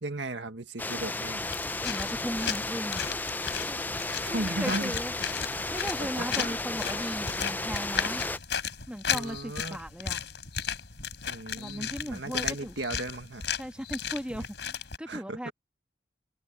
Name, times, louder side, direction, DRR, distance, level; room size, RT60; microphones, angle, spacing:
voice 1, 0.0-1.5 4.2-5.0 5.6-6.1 6.4-6.6 9.1-9.8 11.3-13.5 14.3-14.5 15.1-15.5, right 2 dB, 85° right, 1.8 m, -36 dB
sound 1, 0.8-8.4, left 2 dB, 10° left, 0.5 m, -33 dB
sound 2, 1.5-15.0, left 7 dB, 70° left, 4.6 m, -35 dB
voice 2, 1.8-3.1 3.6-3.8 4.3-5.1 5.4-8.2 8.9-10.2 11.6-12.8 13.6-15.5, equal, 5° right, 1.4 m, -37 dB
head